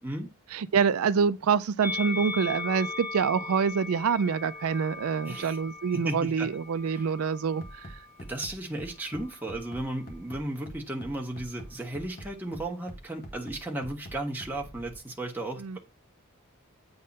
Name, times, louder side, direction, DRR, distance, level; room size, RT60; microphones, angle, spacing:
voice 1, 0.5-7.9 15.6-15.8, right 6 dB, 80° right, 0.4 m, -26 dB
Musical instrument, 1.8-8.2 9.1-10.1, left 3 dB, 15° left, 1.8 m, -39 dB
voice 2, 5.2-5.6 5.9-6.5 6.9-7.1 8.2-15.8, right 1 dB, 10° right, 1.4 m, -35 dB
Bass drum, 7.6-15.0, equal, 45° left, 1.4 m, -44 dB
8.6 x 3.7 x 5.3 m
head